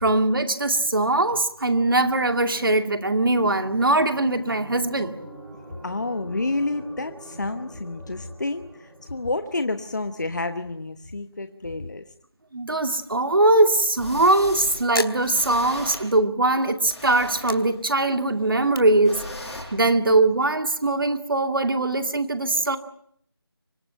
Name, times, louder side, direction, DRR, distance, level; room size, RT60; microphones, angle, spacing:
voice 1, 0.0-5.2 12.5-19.2 19.7-22.8, right 2 dB, 60° right, 2.3 m, -21 dB
sound 1, 2.4-10.7, right 1 dB, 75° right, 7.8 m, -46 dB
voice 2, 5.8-12.1, left 2 dB, 45° left, 1.1 m, -29 dB
sound 2, 12.8-12.9 14.0-14.8 15.2-16.0 16.6-17.8 19.0-19.6, left 1 dB, 5° left, 4.7 m, -38 dB
sound 3, 14.9-16.8 17.2-19.8, left 2 dB, 65° left, 2.4 m, -38 dB
24.5 x 20.5 x 8.9 m
figure-of-eight pair, 175°, 13 cm